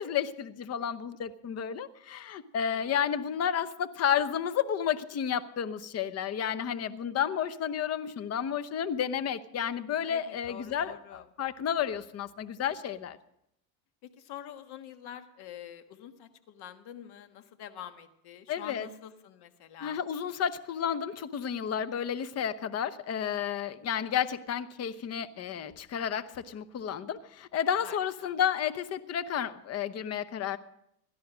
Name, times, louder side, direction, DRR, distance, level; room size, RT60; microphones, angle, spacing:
voice 1, 0.0-13.2 18.5-18.9 19.8-30.6, left 8 dB, 30° left, 14 dB, 0.9 m, -31 dB
voice 2, 2.7-3.0 10.1-11.2 14.0-20.0 27.8-28.4, left 10 dB, 55° left, 9 dB, 1.6 m, -46 dB
17.0 x 12.0 x 6.1 m, 0.79 s
supercardioid pair, 105°, 47 cm